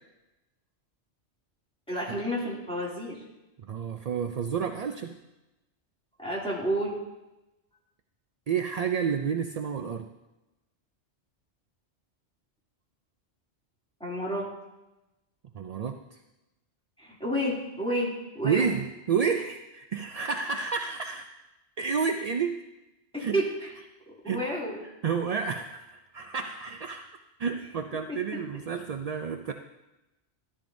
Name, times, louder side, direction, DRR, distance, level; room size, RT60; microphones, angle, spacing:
voice 1, 1.9-3.2 6.2-6.9 14.0-14.5 17.0-18.7 23.1-23.7 24.1-24.8 28.1-28.2, equal, 5° left, -6 dB, 2.6 m, -30 dB
voice 2, 3.6-5.2 8.5-10.1 15.5-16.2 18.4-21.3 21.8-22.6 23.2-23.4 24.2-24.4 24.8-27.1 27.4-29.5, right 6 dB, 60° right, 5 dB, 0.4 m, -30 dB
13.5 x 12.0 x 2.6 m, 1.0 s
omnidirectional pair, 1.2 m